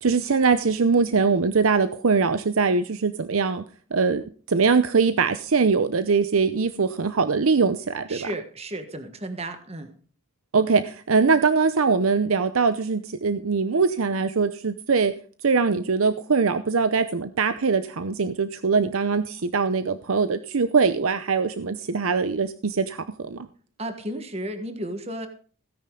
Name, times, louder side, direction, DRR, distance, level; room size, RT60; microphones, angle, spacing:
voice 1, 0.0-3.6 3.9-4.2 4.5-8.3 10.5-15.1 15.4-23.5, right 4 dB, 85° right, 11 dB, 0.7 m, -22 dB
voice 2, 8.1-9.9 23.8-25.3, right 1 dB, 30° right, 7 dB, 1.4 m, -33 dB
16.5 x 10.0 x 3.8 m, 0.42 s
head